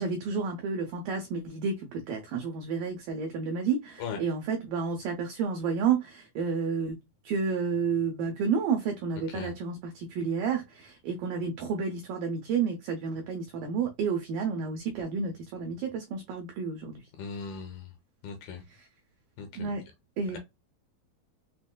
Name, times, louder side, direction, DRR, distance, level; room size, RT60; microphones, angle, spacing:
voice 1, 0.0-7.0 7.2-17.0 18.7-18.9 19.6-19.8 20.2-20.4, right 5 dB, 90° right, 1.9 m, -31 dB
voice 2, 17.2-17.9 18.2-18.6 19.4-19.5 20.3-20.4, left 5 dB, 80° left, 2.2 m, -38 dB
6.1 x 2.1 x 2.2 m
omnidirectional pair, 4.5 m